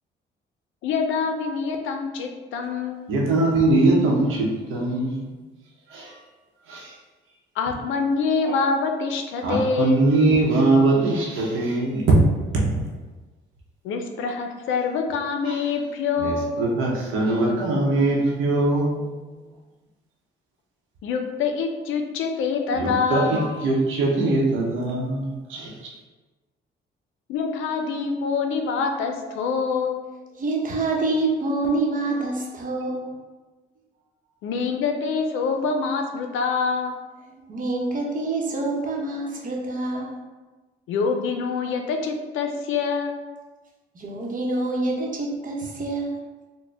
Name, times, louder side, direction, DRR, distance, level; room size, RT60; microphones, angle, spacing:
voice 1, 0.8-3.0 7.6-10.0 13.8-16.6 21.0-23.5 27.3-30.0 34.4-37.0 40.9-43.2, left 5 dB, 85° left, 4 dB, 0.5 m, -25 dB
voice 2, 3.1-5.3 5.9-6.2 6.7-6.9 8.4-8.6 9.4-12.2 12.5-12.6 15.5-15.6 16.2-19.1 22.7-25.7, right 2 dB, 85° right, -2 dB, 0.9 m, -21 dB
voice 3, 30.4-33.1 37.3-40.2 43.9-46.1, right 2 dB, 45° right, -1 dB, 0.9 m, -26 dB
4.0 x 2.1 x 3.3 m, 1.2 s
cardioid pair, 90°, 20 cm